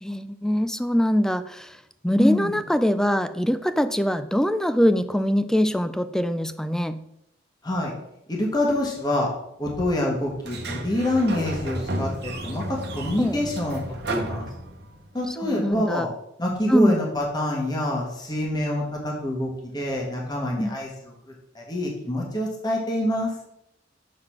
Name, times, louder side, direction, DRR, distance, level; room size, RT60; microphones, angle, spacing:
voice 1, 0.0-1.8 2.0-7.0 13.2-13.4 15.4-16.1 16.7-16.9 20.6-20.7, equal, 5° left, 11 dB, 0.3 m, -23 dB
voice 2, 2.2-2.6 7.6-7.9 8.3-9.3 9.6-14.5 15.1-16.1 16.4-21.1 21.5-23.3, left 1 dB, 20° left, -2 dB, 1.3 m, -26 dB
Sliding door, 10.4-15.1, right 1 dB, 55° right, 1.0 m, -32 dB
6.5 x 3.8 x 5.9 m, 0.79 s
head